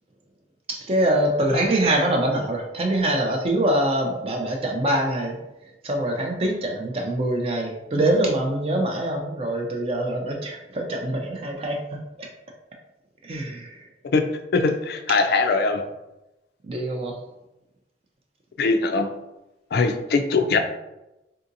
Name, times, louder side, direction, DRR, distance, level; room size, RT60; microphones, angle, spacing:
voice 1, 0.7-5.4 5.8-12.3 13.2-13.9 16.6-17.2, right 1 dB, 30° right, 1 dB, 0.4 m, -24 dB
voice 2, 14.5-15.8 18.6-19.1 19.7-20.6, left 4 dB, 55° left, 6 dB, 0.3 m, -21 dB
3.7 x 2.7 x 2.5 m, 0.96 s
head